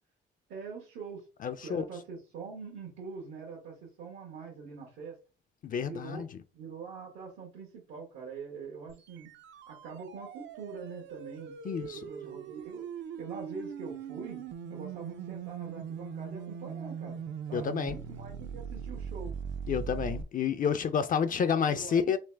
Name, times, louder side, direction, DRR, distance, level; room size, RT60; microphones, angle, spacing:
voice 1, 0.5-1.2 1.6-5.2 5.8-6.2 6.5-9.3 9.7-12.9 13.2-19.3 21.4-22.2, right 5 dB, 90° right, 1.4 m, -44 dB
voice 2, 1.4-1.8 5.6-6.4 11.6-12.1 17.5-18.0 19.7-22.2, left 7 dB, 45° left, 0.4 m, -29 dB
sound 1, 8.9-20.2, right 7 dB, 65° right, 0.5 m, -41 dB
3.2 x 3.1 x 3.3 m
cardioid pair, 90°, 20 cm